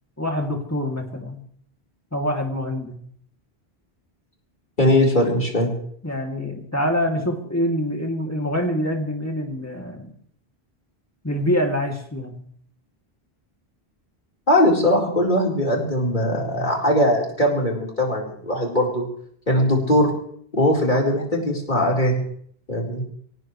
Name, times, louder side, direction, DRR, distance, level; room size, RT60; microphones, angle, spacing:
voice 1, 0.2-1.4 2.1-3.0 6.0-10.1 11.2-12.4, equal, 15° left, 1 dB, 2.8 m, -25 dB
voice 2, 4.8-5.7 14.5-19.1 19.5-20.1 20.5-22.2 22.7-23.0, left 1 dB, 50° left, -2 dB, 4.5 m, -20 dB
23.5 x 18.5 x 3.3 m, 0.62 s
omnidirectional pair, 1.0 m